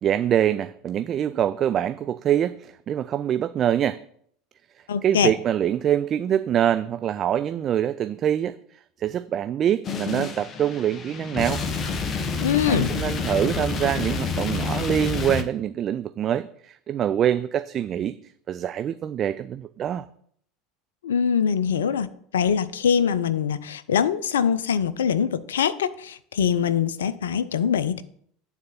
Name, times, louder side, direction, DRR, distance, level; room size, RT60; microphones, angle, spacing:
voice 1, 0.0-4.0 5.0-11.6 12.7-18.1 18.5-20.1, right 10 dB, 40° right, 12 dB, 0.4 m, -25 dB
voice 2, 4.9-5.3 12.4-12.9 21.0-22.1 22.3-28.0, left 7 dB, 80° left, 15 dB, 0.5 m, -23 dB
sound 1, 9.8-15.4, left 5 dB, 35° left, 1.1 m, -28 dB
9.4 x 4.1 x 7.0 m, 0.64 s
hypercardioid pair, 75°, 0 cm